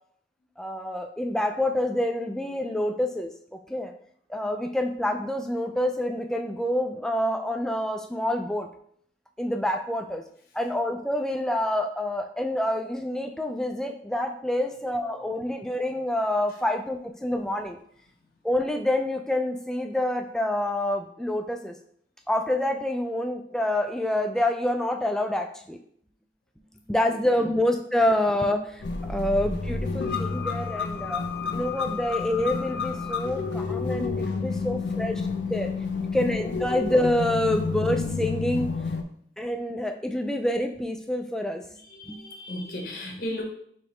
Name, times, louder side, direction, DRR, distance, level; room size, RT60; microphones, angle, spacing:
voice 1, 0.6-3.3 3.7-3.9 4.3-8.7 9.4-10.2 10.5-17.8 18.4-21.8 22.3-25.8 26.9-31.3 31.5-35.2 35.5-35.7 36.1-38.7 39.4-41.6 42.1-42.2, left 1 dB, 5° left, 4 dB, 0.3 m, -27 dB
voice 2, 27.0-27.5 33.8-34.0 34.5-35.0 41.8-43.4, left 1 dB, 55° left, 1 dB, 0.8 m, -37 dB
sound 1, 28.8-39.0, left 4 dB, 85° left, 0.5 m, -30 dB
4.8 x 3.1 x 3.1 m, 0.64 s
head